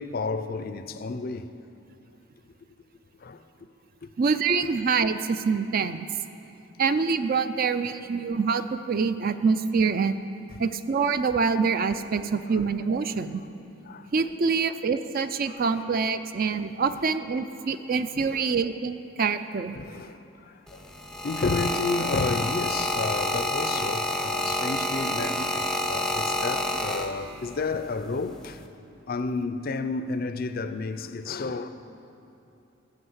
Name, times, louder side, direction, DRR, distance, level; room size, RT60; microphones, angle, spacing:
voice 1, 0.0-1.5 3.2-3.4 10.5-10.6 12.5-12.6 13.8-14.1 14.5-14.6 15.4-15.7 16.9-17.0 18.1-18.5 19.7-20.8 21.2-28.7 29.1-31.7, left 3 dB, 45° left, 0.5 m, -31 dB
voice 2, 4.2-6.1 6.8-10.2 10.6-13.4 14.1-19.8, right 5 dB, 45° right, 0.4 m, -25 dB
sound 1, 20.7-27.5 28.3-28.6, left 1 dB, ahead, 0.6 m, -28 dB
13.0 x 6.2 x 8.0 m
head